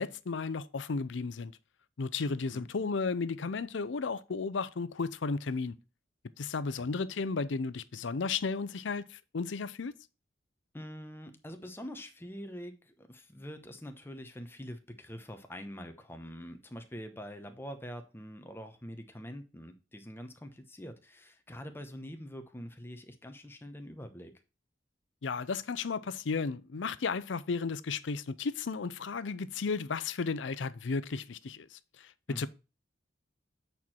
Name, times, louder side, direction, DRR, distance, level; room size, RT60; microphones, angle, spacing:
voice 1, 0.0-1.5 2.0-5.8 6.4-9.9 25.2-31.7 32.4-32.5, left 4 dB, 80° left, 0.5 m, -34 dB
voice 2, 10.7-24.3 32.3-32.5, equal, 10° left, 1.0 m, -45 dB
8.4 x 4.5 x 4.3 m
head